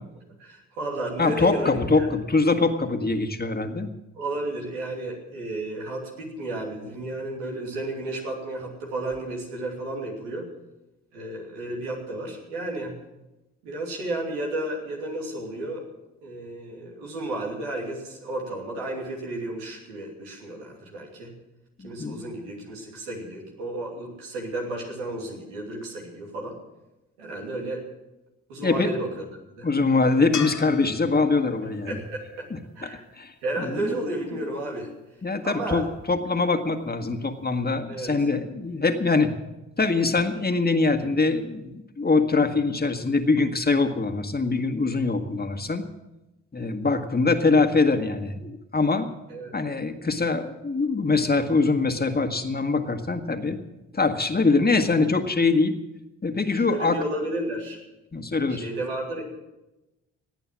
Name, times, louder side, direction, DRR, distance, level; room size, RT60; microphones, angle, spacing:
voice 1, 0.4-2.1 4.1-10.5 11.1-13.0 13.6-15.8 16.2-21.3 21.8-26.6 27.2-27.8 28.5-29.1 29.5-29.7 31.9-32.5 32.7-33.0 33.4-34.9 35.4-35.9 37.9-38.1 49.3-49.5 56.7-57.8 58.5-59.2, right 1 dB, 90° right, -1 dB, 3.0 m, -32 dB
voice 2, 1.2-3.9 21.8-22.2 28.6-28.9 29.6-32.0 32.5-32.6 33.2-33.9 35.2-39.3 39.8-45.8 46.5-49.1 49.5-53.6 53.9-55.8 56.2-57.0 58.1-58.7, left 3 dB, 25° left, 6 dB, 1.9 m, -23 dB
sound 1, 30.3-33.6 36.8-36.9, left 7 dB, 55° left, 1.3 m, -38 dB
18.0 x 9.0 x 7.4 m, 0.99 s
hypercardioid pair, 40°, 35 cm